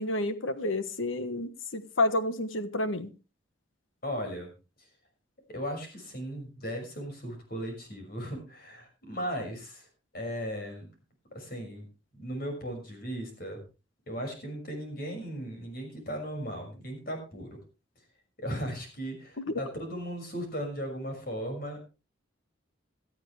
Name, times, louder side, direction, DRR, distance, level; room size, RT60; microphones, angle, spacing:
voice 1, 0.0-3.1 19.4-19.6, left 2 dB, 85° left, 11 dB, 1.4 m, -30 dB
voice 2, 4.0-4.5 5.5-9.9 10.1-10.9 11.3-11.9 12.1-13.6 14.1-17.6 18.4-21.8, equal, 50° left, 3 dB, 6.2 m, -37 dB
17.5 x 13.0 x 3.4 m, 0.31 s
head